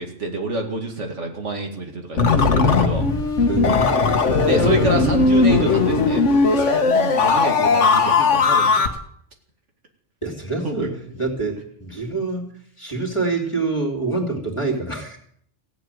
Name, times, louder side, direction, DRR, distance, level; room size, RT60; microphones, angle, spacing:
voice 1, 0.0-3.5 4.4-8.9 10.6-10.9, right 2 dB, 90° right, 2 dB, 2.6 m, -27 dB
sound 1, 2.2-8.9, left 4 dB, 80° left, 1.6 m, -18 dB
voice 2, 3.5-3.9 10.2-12.5 12.8-15.2, right 3 dB, 25° left, 1 dB, 2.8 m, -26 dB
16.0 x 7.9 x 9.1 m, 0.64 s
omnidirectional pair, 1.2 m